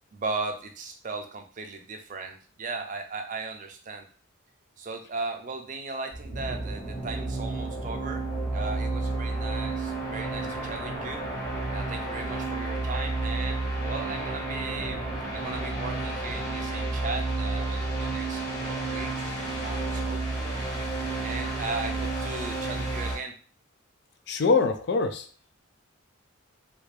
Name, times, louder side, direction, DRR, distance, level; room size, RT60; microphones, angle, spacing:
voice 1, 0.1-4.1 4.8-11.3 11.7-15.0 15.3-20.6 21.2-23.4, right 3 dB, 35° right, 5 dB, 0.4 m, -37 dB
sound 1, 6.1-23.2, right 2 dB, 20° left, 1.1 m, -31 dB
voice 2, 24.3-25.3, left 4 dB, 50° left, 8 dB, 0.3 m, -23 dB
3.4 x 2.5 x 3.3 m, 0.39 s
head